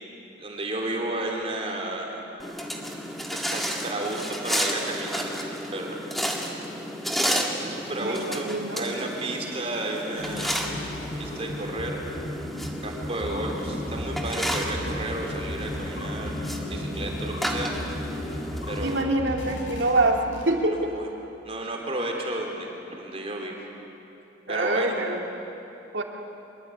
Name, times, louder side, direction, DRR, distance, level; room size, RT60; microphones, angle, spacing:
voice 1, 0.4-2.2 3.3-6.0 7.6-8.5 8.7-10.6 11.2-12.0 12.8-16.4 16.7-17.7 18.7-19.1 20.7-21.1 21.4-23.7 24.5-24.9, right 1 dB, 30° right, 0 dB, 3.6 m, -32 dB
sound 1, 2.4-19.0, equal, ahead, 1.9 m, -32 dB
voice 2, 8.0-8.9 18.8-21.0 24.5-25.2 25.9-26.0, right 2 dB, 70° right, 2 dB, 2.5 m, -25 dB
sound 2, 8.3-20.9, left 1 dB, 75° left, 6.6 m, -35 dB
25.0 x 22.0 x 8.5 m, 2.9 s
head